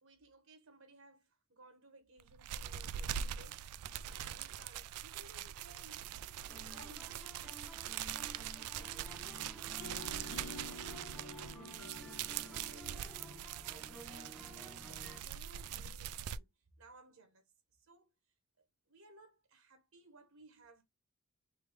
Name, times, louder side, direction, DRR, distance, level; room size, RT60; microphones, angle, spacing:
voice 1, 0.0-7.8 8.0-13.1 13.7-16.5 16.8-17.4 17.7-18.1 18.6-20.8, right 2 dB, 65° right, 1.0 m, -61 dB
sound 1, 2.2-16.4, right 10 dB, 90° right, 0.3 m, -43 dB
sound 2, 6.5-15.2, equal, ahead, 0.6 m, -53 dB
sound 3, 9.8-13.9, left 2 dB, 70° left, 0.7 m, -52 dB
3.3 x 3.0 x 3.3 m
head